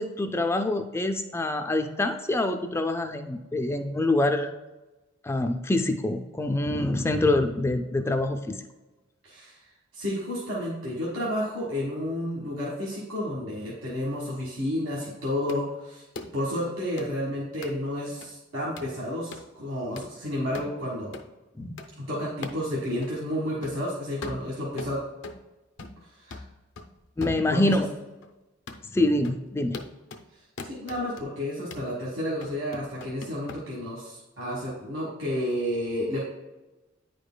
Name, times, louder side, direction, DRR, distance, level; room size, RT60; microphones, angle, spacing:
voice 1, 0.0-4.5 5.2-8.7 21.6-21.8 27.2-27.9 28.8-29.8, left 2 dB, 15° left, 7 dB, 0.3 m, -26 dB
voice 2, 9.2-9.6 9.9-16.0 16.3-21.2 22.0-25.0 26.0-26.4 27.5-27.8 30.7-36.2, left 1 dB, 70° right, -6 dB, 1.5 m, -31 dB
sound 1, 15.5-15.6 16.2-16.3 17.0-17.1 17.6-17.7 18.2-18.3 18.8-18.9 19.3-19.5 20.0-20.1 20.5-20.8 21.1-21.3 21.8-21.9 22.4-22.6 23.0-23.1 23.6-23.8 24.2-25.4 25.8-26.1 26.3-27.9 28.2-28.3 28.7-28.9 29.2-29.4 29.7-30.3 30.6-31.3 31.7-31.9 32.4-33.6, left 3 dB, 60° left, 0.6 m, -40 dB
9.5 x 4.9 x 2.2 m, 1.1 s
head